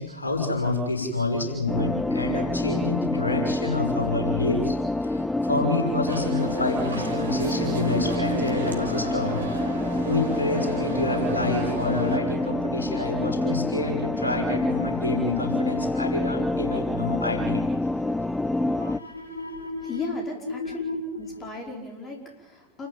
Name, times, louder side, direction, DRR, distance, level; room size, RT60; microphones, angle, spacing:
voice 1, 0.0-4.8 5.0-17.6 18.7-20.1 20.5-21.4, left 2 dB, 75° left, 1 dB, 6.2 m, -28 dB
sound 1, 1.7-19.0, left 2 dB, 5° left, 0.7 m, -27 dB
sound 2, 6.1-12.2, right 3 dB, 75° right, 3.1 m, -35 dB
voice 2, 19.8-20.8 21.2-22.9, left 2 dB, 20° left, 1 dB, 5.2 m, -36 dB
28.5 x 14.5 x 9.1 m, 1.1 s
figure-of-eight pair, 90°, 0 cm